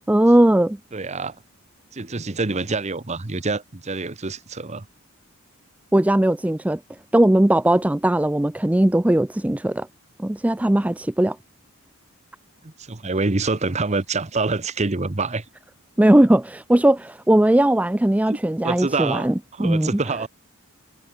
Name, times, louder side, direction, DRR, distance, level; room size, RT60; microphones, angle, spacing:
voice 1, 0.0-0.8 5.9-6.8 7.1-9.9 10.2-11.4 16.0-19.3 19.6-19.9, right 1 dB, 5° right, 0.3 m, -18 dB
voice 2, 0.9-1.4 1.9-4.9 12.6-15.4 18.3-18.4 18.6-19.3 19.6-20.3, right 3 dB, 30° right, 1.0 m, -26 dB
head